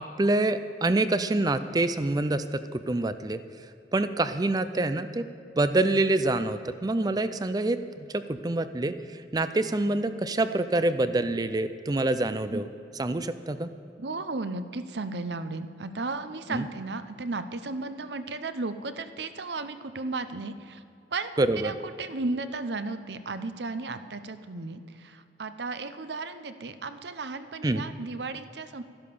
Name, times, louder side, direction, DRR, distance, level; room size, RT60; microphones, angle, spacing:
voice 1, 0.0-3.4 3.9-5.3 5.6-13.7 16.5-16.7 21.4-21.7 27.6-27.8, right 2 dB, 20° right, 12 dB, 0.4 m, -26 dB
voice 2, 14.0-20.8 21.1-28.8, right 3 dB, 75° right, 11 dB, 0.8 m, -34 dB
13.0 x 11.5 x 6.9 m, 2.6 s
head